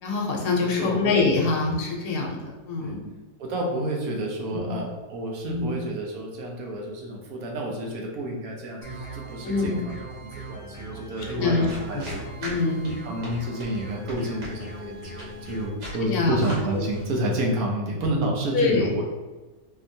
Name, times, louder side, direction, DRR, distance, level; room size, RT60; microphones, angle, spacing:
voice 1, 0.0-3.0 4.5-4.7 5.4-5.8 9.4-9.8 11.2-11.7 11.9-12.1 12.4-13.0 15.9-16.5 16.7-16.8 18.5-18.9, left 3 dB, 75° left, 0 dB, 1.2 m, -25 dB
voice 2, 0.6-1.1 1.4-1.5 2.8-3.0 3.4-12.2 13.0-19.0, right 1 dB, 70° right, 0 dB, 1.1 m, -30 dB
sound 1, 8.8-15.7, right 2 dB, 45° left, 1.0 m, -40 dB
sound 2, 11.7-17.0, right 1 dB, 85° right, 1.7 m, -40 dB
3.8 x 2.9 x 2.7 m, 1.2 s
omnidirectional pair, 1.7 m